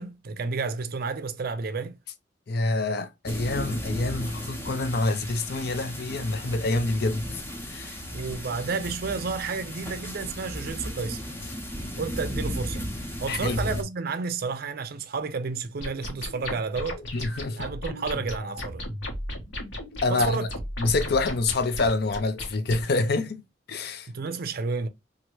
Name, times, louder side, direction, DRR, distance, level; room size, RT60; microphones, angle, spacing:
voice 1, 0.0-2.0 8.1-11.2 12.0-12.9 13.2-17.0 17.6-18.9 20.1-20.5 24.1-24.9, right 4 dB, 50° right, 0.5 m, -31 dB
voice 2, 2.5-7.3 7.7-8.0 13.3-13.8 17.1-17.7 20.0-20.5 20.8-23.4 23.7-24.1, left 2 dB, 55° left, 0.5 m, -26 dB
sound 1, 3.3-13.8, equal, 10° left, 0.7 m, -35 dB
sound 2, 15.8-22.8, left 1 dB, 75° left, 1.2 m, -35 dB
2.8 x 2.5 x 2.9 m
head